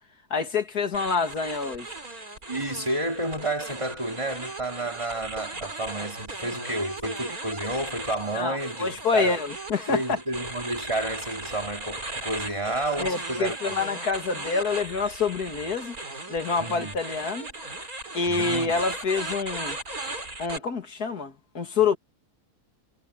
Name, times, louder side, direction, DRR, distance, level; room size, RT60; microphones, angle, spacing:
voice 1, 0.3-1.9 8.3-10.2 13.0-16.0 16.3-17.5 18.1-19.8 20.4-22.0, left 4 dB, 75° left, 2.6 m, -27 dB
sound 1, 0.9-20.6, right 2 dB, 65° right, 5.4 m, -37 dB
voice 2, 2.5-9.4 9.9-13.7 16.6-17.0 18.3-18.7, right 1 dB, 20° right, 3.2 m, -30 dB
omnidirectional pair, 1.7 m